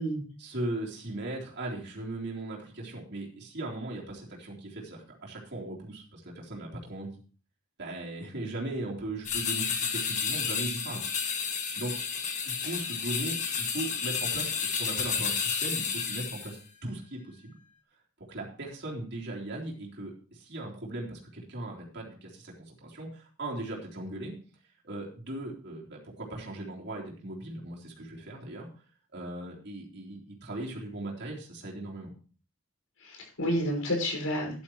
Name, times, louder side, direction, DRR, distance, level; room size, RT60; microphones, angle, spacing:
voice 1, 0.4-7.1 7.8-11.0 11.8-12.0 12.5-17.6 18.3-24.3 24.8-28.7 29.1-32.1, right 1 dB, 55° right, -3 dB, 3.6 m, -38 dB
sound 1, 9.2-16.6, left 6 dB, 35° left, 1.8 m, -31 dB
voice 2, 12.4-12.7 33.0-34.6, equal, 80° left, 1 dB, 5.7 m, -31 dB
12.5 x 11.5 x 3.1 m, 0.39 s
head